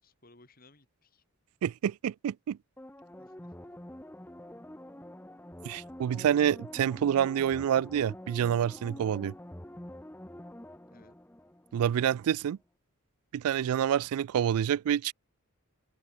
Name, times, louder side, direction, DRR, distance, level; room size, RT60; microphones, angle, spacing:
voice 1, 0.0-1.2 3.2-3.8 4.5-4.7 8.9-9.1 10.9-11.2, left 2 dB, 40° left, 2.3 m, -61 dB
voice 2, 1.6-2.6 5.6-9.3 11.7-12.6 13.3-15.1, right 9 dB, 80° right, 0.3 m, -27 dB
sound 1, 2.8-12.2 12.5-12.6, left 1 dB, 10° left, 0.8 m, -47 dB
head